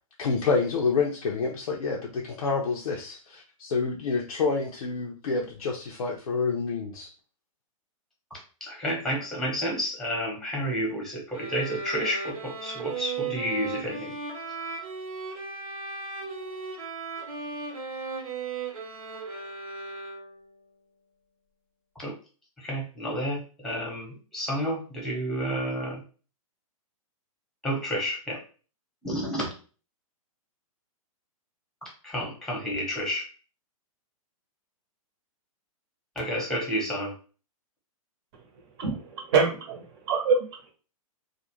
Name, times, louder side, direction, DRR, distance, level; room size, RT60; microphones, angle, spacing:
voice 1, 0.2-7.1, left 4 dB, 90° left, 0 dB, 0.5 m, -28 dB
voice 2, 8.3-14.1 21.9-22.1 22.6-26.0 27.6-28.4 29.0-29.5 32.0-33.3 36.1-37.1, equal, ahead, -2 dB, 0.9 m, -30 dB
sound 1, 11.3-20.5, right 4 dB, 80° right, 0.9 m, -36 dB
voice 3, 38.8-40.7, right 5 dB, 45° right, 2 dB, 0.8 m, -26 dB
2.4 x 2.1 x 3.0 m, 0.37 s
hypercardioid pair, 145°, 18 cm